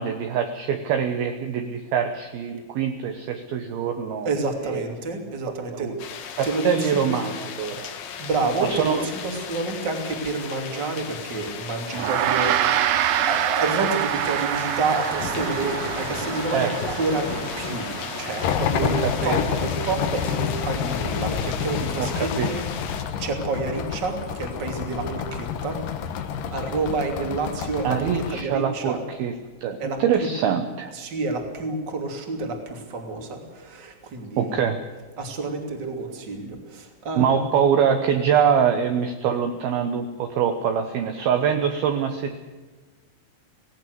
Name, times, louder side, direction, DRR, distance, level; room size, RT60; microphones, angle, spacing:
voice 1, 0.0-4.3 4.6-4.8 5.7-6.0 6.4-7.9 8.6-9.1 16.5-16.7 18.8-19.4 22.0-22.5 27.8-29.3 29.6-30.9 34.4-34.8 37.2-42.4, right 7 dB, 70° right, 6 dB, 2.4 m, -24 dB
voice 2, 4.2-5.9 6.4-7.2 8.2-13.0 13.3-17.9 18.2-22.7 22.9-25.8 26.5-28.0 28.3-29.0 29.8-30.3 30.9-34.7 35.2-37.5, right 3 dB, 30° right, 4 dB, 2.6 m, -29 dB
sound 1, 6.0-23.0, left 7 dB, 60° left, 2.9 m, -35 dB
Gong, 11.9-21.6, right 12 dB, 90° right, 2.1 m, -27 dB
sound 2, 18.4-28.4, left 7 dB, 75° left, 2.0 m, -29 dB
18.0 x 18.0 x 7.9 m, 1.3 s
omnidirectional pair, 5.6 m